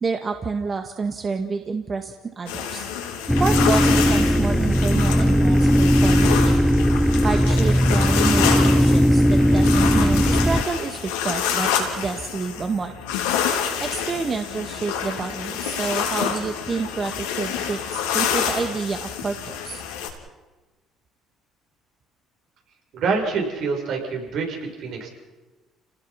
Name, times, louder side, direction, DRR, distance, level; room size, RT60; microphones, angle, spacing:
voice 1, 0.0-2.9 3.4-6.5 7.2-12.9 13.8-19.8, right 4 dB, 35° right, 5 dB, 1.8 m, -28 dB
sound 1, 2.5-20.1, left 8 dB, 85° left, 3.6 m, -27 dB
sound 2, 3.3-10.6, equal, 5° left, 1.0 m, -18 dB
voice 2, 22.9-25.1, right 4 dB, 65° right, 1 dB, 6.9 m, -26 dB
30.0 x 19.0 x 6.0 m, 1.2 s
hypercardioid pair, 65°, 0 cm